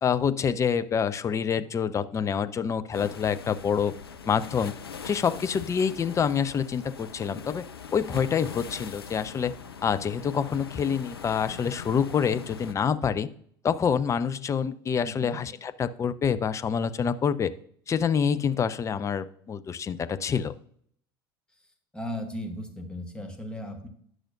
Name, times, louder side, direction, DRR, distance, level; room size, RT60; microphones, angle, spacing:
voice 1, 0.0-3.9 4.3-4.8 5.0-7.6 7.9-9.5 9.8-13.3 13.6-17.5 17.9-20.5, left 7 dB, 25° left, 13 dB, 0.4 m, -27 dB
sound 1, 2.9-12.7, left 6 dB, 85° left, 0.5 m, -41 dB
voice 2, 15.0-15.4 21.9-23.9, left 1 dB, 5° left, 3 dB, 1.3 m, -36 dB
10.0 x 6.2 x 2.5 m, 0.62 s
figure-of-eight pair, 70°, 13 cm